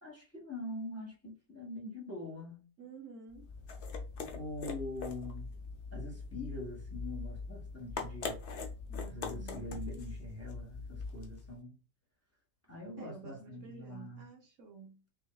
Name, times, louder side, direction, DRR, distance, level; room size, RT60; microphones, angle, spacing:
voice 1, 0.0-2.6 4.3-5.5 5.9-8.4 9.1-11.8 12.7-14.3, left 1 dB, 10° left, 1.3 m, -44 dB
voice 2, 2.8-3.4 8.9-9.7 13.0-15.0, right 4 dB, 65° right, 1.1 m, -51 dB
sound 1, 3.3-11.5, left 4 dB, 55° left, 1.0 m, -42 dB
5.7 x 2.6 x 2.3 m
omnidirectional pair, 1.5 m